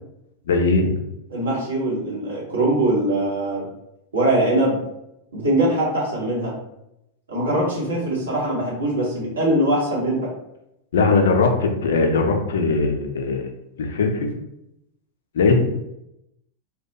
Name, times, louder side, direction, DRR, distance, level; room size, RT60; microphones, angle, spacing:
voice 1, 0.5-0.9 10.9-13.5 13.8-14.3 15.3-15.6, left 3 dB, 60° left, 3 dB, 0.4 m, -19 dB
voice 2, 1.3-3.6 4.1-4.8 5.3-6.5 7.3-10.3, right 1 dB, 70° right, -4 dB, 1.0 m, -22 dB
2.2 x 2.2 x 2.7 m, 0.83 s
figure-of-eight pair, 90°, 0 cm